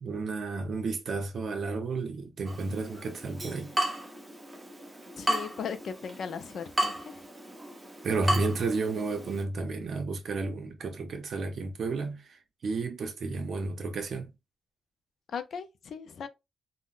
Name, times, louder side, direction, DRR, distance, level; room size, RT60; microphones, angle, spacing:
voice 1, 0.0-3.7 8.0-14.3, right 3 dB, 55° right, 0.6 m, -32 dB
Water tap faucet / Drip, 2.4-9.4, right 1 dB, 10° right, 0.6 m, -34 dB
voice 2, 5.2-7.1 15.3-16.3, left 6 dB, 60° left, 0.4 m, -37 dB
3.7 x 2.1 x 2.4 m
wide cardioid pair, 155°, 0 cm